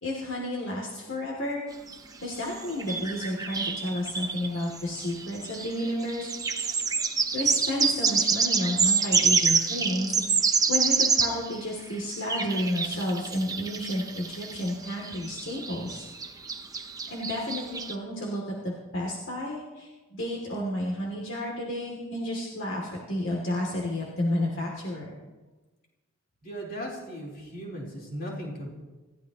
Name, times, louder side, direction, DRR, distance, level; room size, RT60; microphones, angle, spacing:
voice 1, 0.0-1.6 2.2-6.3 7.3-16.0 17.1-25.1, left 1 dB, 65° left, -3 dB, 2.9 m, -31 dB
sound 1, 1.9-2.0 2.6-11.6 12.1-17.9, right 5 dB, 15° right, 0.8 m, -27 dB
voice 2, 26.4-28.8, equal, 45° left, -3 dB, 4.0 m, -37 dB
27.5 x 15.0 x 3.1 m, 1.2 s
head